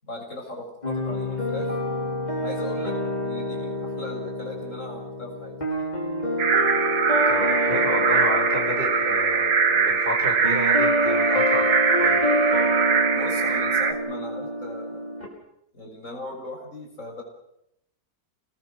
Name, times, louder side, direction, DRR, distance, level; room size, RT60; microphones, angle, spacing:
voice 1, 0.0-1.7 2.4-2.9 3.2-5.6 13.1-15.2 15.7-17.2, left 1 dB, 45° left, 0 dB, 7.0 m, -38 dB
sound 1, 0.8-15.3, equal, 25° left, 5.8 m, -27 dB
sound 2, 6.4-13.9, right 6 dB, 80° right, 2.2 m, -22 dB
voice 2, 7.3-12.2, left 1 dB, 30° right, 1 dB, 5.9 m, -31 dB
30.0 x 20.0 x 6.5 m, 0.80 s
omnidirectional pair, 1.8 m